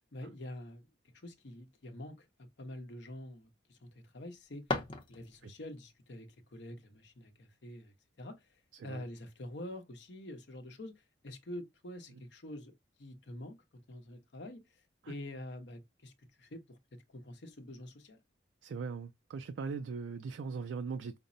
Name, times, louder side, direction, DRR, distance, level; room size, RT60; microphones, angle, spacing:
voice 1, 0.1-0.9 1.1-4.7 5.1-12.7 13.0-16.1 16.4-18.2, left 1 dB, 70° left, 0.8 m, -47 dB
sound 1, 4.2-5.7, left 2 dB, 30° left, 0.7 m, -38 dB
voice 2, 18.6-21.2, right 5 dB, 75° right, 0.3 m, -40 dB
5.1 x 2.0 x 2.6 m
head